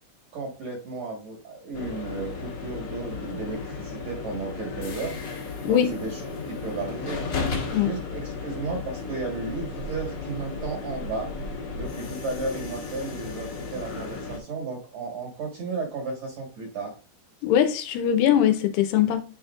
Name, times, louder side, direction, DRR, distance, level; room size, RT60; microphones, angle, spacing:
voice 1, 0.3-5.4 5.6-7.2 7.7-11.3 11.7-16.9, right 3 dB, 55° right, 2.0 m, -34 dB
sound 1, 1.7-14.4, left 4 dB, 55° left, 2.1 m, -34 dB
voice 2, 17.4-19.2, left 10 dB, 85° left, 2.7 m, -21 dB
11.0 x 4.4 x 2.4 m
omnidirectional pair, 4.8 m